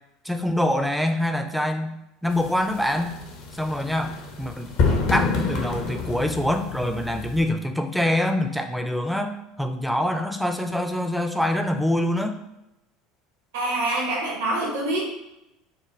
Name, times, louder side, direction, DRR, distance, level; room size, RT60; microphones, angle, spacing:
voice 1, 0.2-1.9 2.2-3.2 3.5-4.7 5.1-12.4, left 1 dB, ahead, 6 dB, 0.4 m, -25 dB
sound 1, 2.3-7.4, left 4 dB, 55° left, 0.6 m, -28 dB
voice 2, 13.5-15.0, right 2 dB, 70° right, -2 dB, 0.8 m, -25 dB
3.6 x 2.1 x 3.1 m, 0.89 s
figure-of-eight pair, 70°, 0 cm